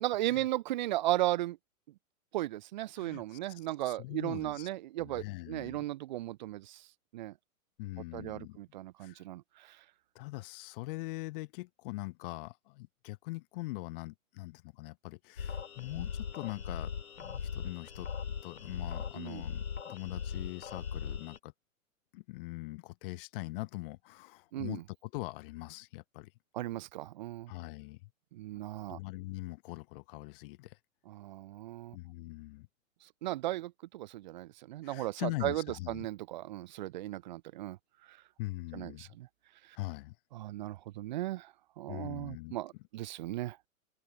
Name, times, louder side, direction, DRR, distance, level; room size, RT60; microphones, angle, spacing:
voice 1, 0.0-1.6 2.3-6.8 7.1-7.3 8.1-9.8 19.1-19.4 24.5-24.8 26.5-27.5 28.3-29.0 31.1-32.0 33.2-37.8 38.1-38.2 38.7-39.3 40.3-43.6, right 15 dB, 35° right, 0.4 m, -36 dB
voice 2, 3.0-4.7 5.0-5.8 7.8-8.6 9.0-9.2 10.1-18.1 18.4-21.5 22.1-26.3 27.5-28.1 28.9-30.8 31.9-32.7 34.8-36.1 38.4-39.0 39.8-40.2 41.9-42.6, left 21 dB, 40° left, 1.0 m, -42 dB
sound 1, 15.4-21.4, left 7 dB, 75° left, 3.8 m, -39 dB
open air
figure-of-eight pair, 110°, 42 cm